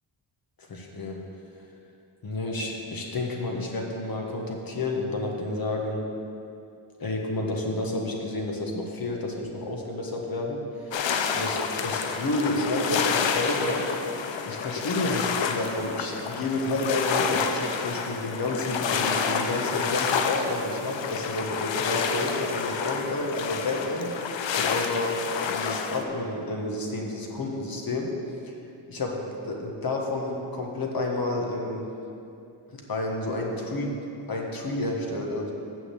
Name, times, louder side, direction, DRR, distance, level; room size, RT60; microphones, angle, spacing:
voice 1, 0.6-1.2 2.2-6.0 7.0-11.0 11.3-13.8 14.5-24.1 24.6-25.1 25.5-28.1 28.4-28.5 28.9-31.9 32.7-34.0 34.3-35.5, left 2 dB, 50° left, 0 dB, 1.4 m, -30 dB
sound 1, 10.9-26.0, left 6 dB, 70° left, 0.7 m, -29 dB
6.6 x 6.2 x 7.5 m, 2.7 s
cardioid pair, 85°, 46 cm